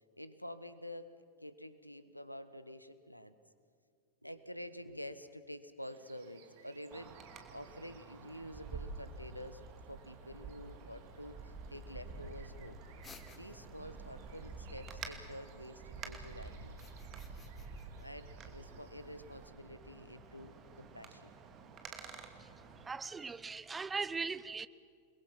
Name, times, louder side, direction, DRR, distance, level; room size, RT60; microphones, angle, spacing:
voice 1, 0.1-1.1 1.4-3.4 4.2-9.6 9.9-12.8 13.3-16.8 18.0-21.3, equal, 90° left, 1.3 m, -48 dB
sound 1, 5.8-19.5, right 7 dB, 50° right, 2.6 m, -62 dB
Wind, 6.9-22.9, right 4 dB, 30° right, 2.6 m, -49 dB
sound 2, 13.0-13.9 16.6-18.1, left 5 dB, 20° left, 2.1 m, -58 dB
voice 2, 22.8-24.7, right 4 dB, 15° right, 0.8 m, -39 dB
29.0 x 21.5 x 6.0 m
figure-of-eight pair, 90°, 0 cm